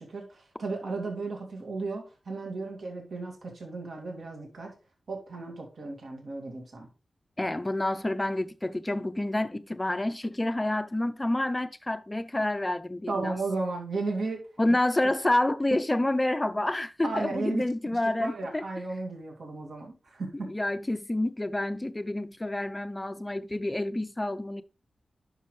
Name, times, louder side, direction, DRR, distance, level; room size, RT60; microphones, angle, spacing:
voice 1, 0.0-4.7 5.1-6.9 13.1-14.4 15.7-15.8 17.0-17.6 18.2-20.5, right 3 dB, 65° right, 2.3 m, -34 dB
voice 2, 7.4-13.3 14.6-18.7 20.4-24.6, left 1 dB, 15° left, 0.5 m, -28 dB
10.0 x 6.1 x 3.2 m
wide cardioid pair, 120°, 0 cm